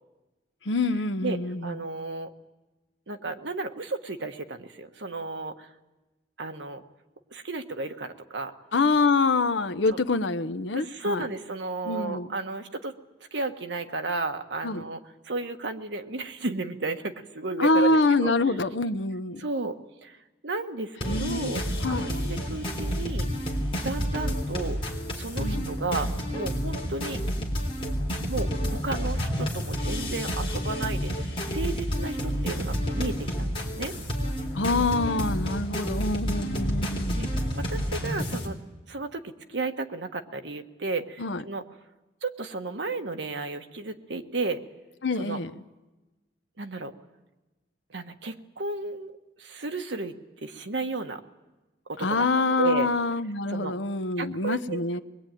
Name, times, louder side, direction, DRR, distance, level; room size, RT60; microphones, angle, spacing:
voice 1, 0.7-1.8 8.7-11.2 11.8-12.3 14.6-14.8 17.6-19.4 21.0-21.5 21.8-22.1 25.4-25.7 34.5-37.3 41.2-41.4 45.0-45.6 52.0-55.0, left 3 dB, 90° left, 11 dB, 0.9 m, -26 dB
voice 2, 1.6-2.3 3.1-5.7 6.4-6.8 7.3-8.5 9.9-10.0 10.7-12.9 13.3-15.0 15.3-18.7 19.4-20.2 20.4-21.6 21.9-23.3 23.8-27.2 28.3-33.9 37.2-37.3 37.6-38.6 38.9-41.6 42.2-44.6 45.2-45.4 46.6-46.9 47.9-49.1 49.4-51.2 51.9-52.9 53.5-53.7 54.2-55.0, right 3 dB, 85° right, 6 dB, 1.5 m, -33 dB
sound 1, 21.0-38.5, equal, 30° left, 3.7 m, -30 dB
22.5 x 21.5 x 9.1 m, 1.1 s
head